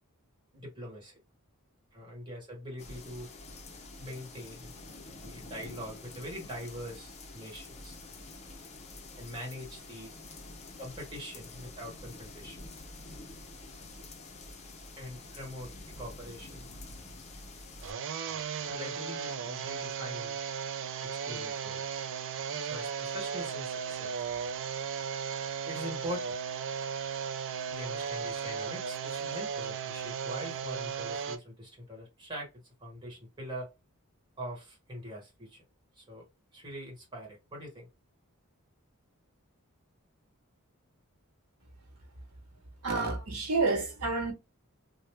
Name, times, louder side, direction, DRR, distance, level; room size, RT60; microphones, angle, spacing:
voice 1, 0.5-1.1 1.9-3.3 4.0-4.7 5.2-7.9 9.2-10.1 10.8-12.6 15.0-16.7 18.7-20.4 21.0-21.8 22.7-24.1 25.7-26.3 27.7-32.5 32.8-33.7 34.4-35.6 36.0-36.2 36.5-37.9, equal, 20° right, 1.4 m, -43 dB
sound 1, 2.8-17.9, left 2 dB, 30° left, 0.6 m, -47 dB
sound 2, 17.8-31.4, right 7 dB, 60° right, 0.4 m, -36 dB
voice 2, 42.8-44.3, right 3 dB, 85° right, 1.2 m, -29 dB
3.0 x 2.2 x 3.1 m
head